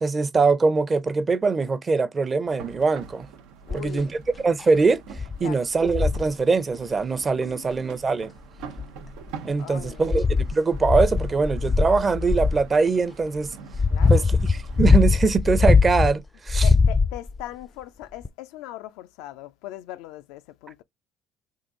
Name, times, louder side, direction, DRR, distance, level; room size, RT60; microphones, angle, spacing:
voice 1, 0.0-3.3 3.7-4.2 4.4-5.0 5.4-8.3 9.4-13.5 14.1-16.7, right 4 dB, 30° right, 0.6 m, -22 dB
sound 1, 2.4-14.9, right 6 dB, 90° right, 0.6 m, -44 dB
voice 2, 3.6-4.1 5.4-5.6 7.3-7.8 9.6-10.1 13.9-14.3 16.6-20.8, left 14 dB, 85° left, 0.4 m, -40 dB
sound 2, 3.7-4.0 4.6-4.7 5.2-5.4 5.9-6.3 7.7-7.8 8.6-9.3 9.8-12.7 13.4-16.1 16.5-17.4 18.2-18.3, left 4 dB, 20° left, 0.4 m, -21 dB
3.8 x 2.5 x 3.7 m
supercardioid pair, 85°, 0 cm